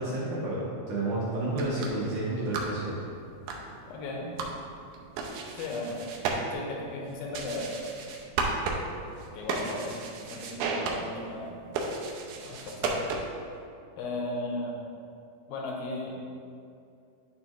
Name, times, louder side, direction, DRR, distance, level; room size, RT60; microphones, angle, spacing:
voice 1, 0.0-2.9, right 2 dB, 70° right, -7 dB, 2.0 m, -30 dB
sound 1, 1.4-13.5, right 3 dB, 85° right, 1.8 m, -35 dB
voice 2, 3.9-4.3 5.6-6.0 6.5-7.7 9.3-10.0 10.3-11.5 12.4-13.0 14.0-14.7 15.5-16.2, left 2 dB, 80° left, -1 dB, 2.5 m, -36 dB
9.4 x 4.2 x 3.0 m, 2.5 s
omnidirectional pair, 4.4 m